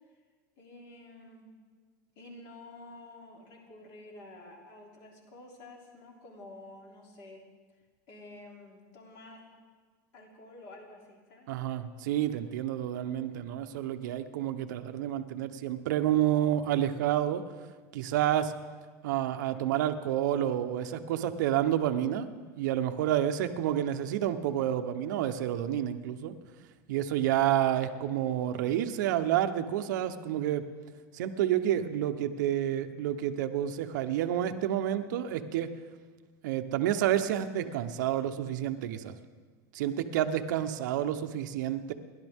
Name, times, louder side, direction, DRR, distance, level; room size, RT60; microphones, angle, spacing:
voice 1, 0.6-1.5 2.1-7.4 8.1-9.5 10.1-11.5, left 2 dB, 45° left, -1 dB, 3.3 m, -50 dB
voice 2, 11.5-17.4 17.9-18.5 19.0-22.3 22.6-26.3 26.9-30.6 31.1-35.7 36.4-39.2 39.7-41.9, right 11 dB, 80° right, 8 dB, 1.0 m, -29 dB
29.0 x 11.5 x 3.6 m, 1.5 s
supercardioid pair, 170°, 10 cm